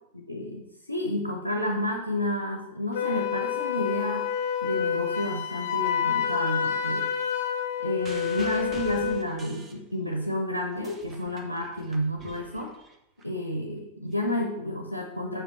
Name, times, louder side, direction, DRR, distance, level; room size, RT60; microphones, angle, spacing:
voice 1, 0.3-4.3 4.6-7.1 7.8-12.7 13.2-15.4, left 1 dB, 90° left, 3 dB, 0.7 m, -30 dB
Wind instrument woodwind instrument, 2.9-9.3, left 8 dB, 50° left, 1.1 m, -28 dB
sound 1, 8.0-10.3 10.6-13.2 14.1-14.2, right 4 dB, 20° right, 0.9 m, -46 dB
5.0 x 4.9 x 6.1 m, 0.87 s
figure-of-eight pair, 90°, 0 cm